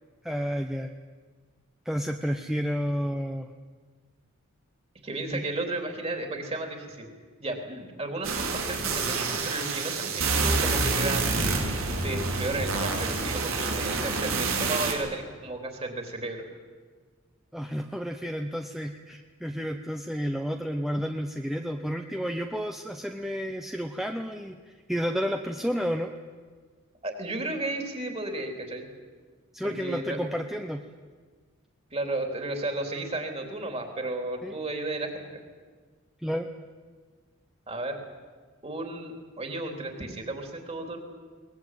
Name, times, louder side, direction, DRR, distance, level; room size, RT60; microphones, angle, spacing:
voice 1, 0.2-0.9 1.8-3.5 5.3-5.4 17.5-26.1 29.5-30.8 34.4-34.5 36.2-36.5, equal, ahead, 4 dB, 0.8 m, -31 dB
voice 2, 5.0-7.1 7.4-11.6 12.0-16.4 27.0-28.9 29.6-30.4 31.9-35.3 37.7-38.0 38.6-41.0, right 2 dB, 30° right, 4 dB, 3.5 m, -33 dB
sound 1, 8.2-14.9, right 3 dB, 85° right, 4.4 m, -27 dB
22.0 x 20.0 x 9.3 m, 1.5 s
head